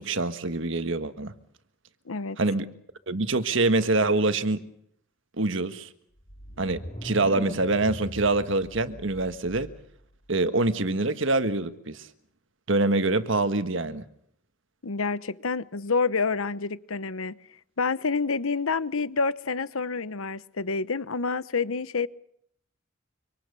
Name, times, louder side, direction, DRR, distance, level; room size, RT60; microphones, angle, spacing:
voice 1, 0.0-1.3 2.4-2.7 3.1-4.7 5.4-5.9 6.6-9.7 10.3-12.1 12.7-14.0, right 2 dB, 65° right, 1.6 m, -25 dB
voice 2, 2.1-2.4 14.8-17.4 17.8-22.1, left 4 dB, 80° left, 1.0 m, -28 dB
sound 1, 6.2-10.0, equal, 35° left, 3.1 m, -40 dB
26.0 x 25.5 x 6.9 m
head